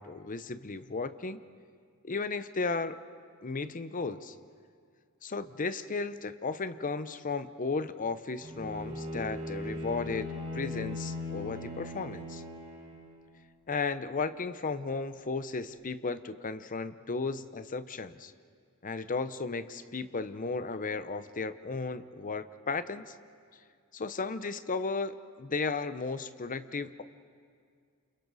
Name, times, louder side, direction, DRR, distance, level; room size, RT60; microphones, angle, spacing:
voice 1, 0.0-1.4 2.0-3.0 3.4-4.3 5.2-12.4 13.7-18.3 18.8-23.1 23.9-27.0, left 4 dB, 40° left, 12 dB, 0.7 m, -35 dB
Bowed string instrument, 8.4-13.2, left 2 dB, 30° right, 7.2 m, -39 dB
29.5 x 28.5 x 4.1 m, 2.2 s
head